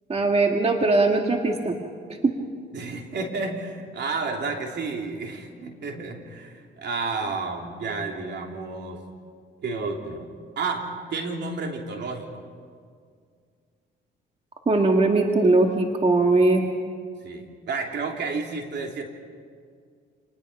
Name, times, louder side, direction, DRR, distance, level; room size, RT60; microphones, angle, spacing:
voice 1, 0.1-1.8 2.2-2.3 14.7-16.6, right 2 dB, 30° right, 2 dB, 1.9 m, -20 dB
voice 2, 2.7-9.0 9.6-10.2 10.6-12.3 17.2-19.0, right 4 dB, 60° right, 2 dB, 3.3 m, -31 dB
28.0 x 20.0 x 5.7 m, 2.1 s
cardioid pair, 90°, 20 cm